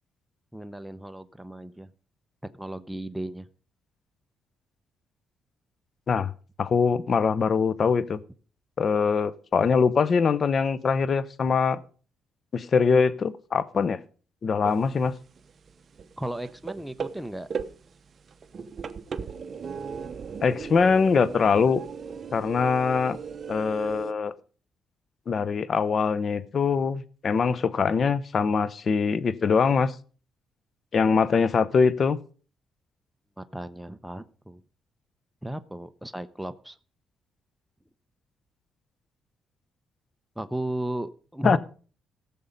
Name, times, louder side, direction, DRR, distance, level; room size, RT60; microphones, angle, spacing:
voice 1, 0.5-1.9 2.6-3.5 16.2-17.5 33.4-34.6 35.4-36.8 40.4-41.6, right 1 dB, 5° right, 0.7 m, -35 dB
voice 2, 6.6-8.2 8.8-11.8 12.5-14.0 14.4-15.2 20.4-21.8 22.3-23.2 23.5-24.3 25.3-29.9 30.9-32.2 41.4-41.6, left 5 dB, 45° left, 0.8 m, -23 dB
sound 1, 14.6-15.1 15.4-24.1, right 6 dB, 45° right, 0.8 m, -37 dB
15.5 x 7.0 x 5.2 m
cardioid pair, 90°, 0 cm